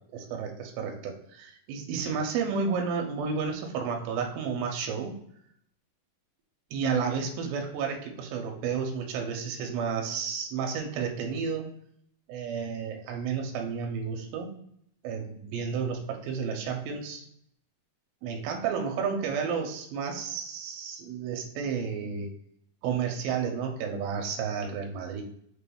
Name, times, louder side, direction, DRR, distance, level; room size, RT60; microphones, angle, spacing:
voice 1, 0.0-5.1 6.7-11.7 12.3-14.5 15.0-17.2 18.2-22.3 22.8-25.2, right 6 dB, 90° right, 2 dB, 2.4 m, -31 dB
6.2 x 2.3 x 3.5 m, 0.70 s
omnidirectional pair, 4.0 m